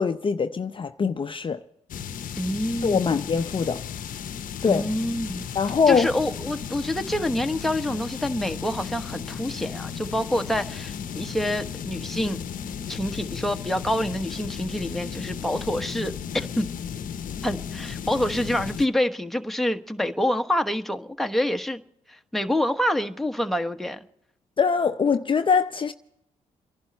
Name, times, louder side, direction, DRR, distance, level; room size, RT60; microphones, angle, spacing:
voice 1, 0.0-1.6 2.8-3.8 4.6-4.8 5.5-6.1 24.6-25.9, left 5 dB, 35° left, 0.7 m, -23 dB
sound 1, 1.9-18.9, left 8 dB, 65° left, 0.8 m, -35 dB
voice 2, 2.4-3.2 4.6-5.4 5.9-12.4 12.9-16.7 17.4-21.8 22.1-24.0, left 1 dB, ahead, 1.2 m, -27 dB
28.0 x 11.0 x 4.3 m
supercardioid pair, 60°, 15 cm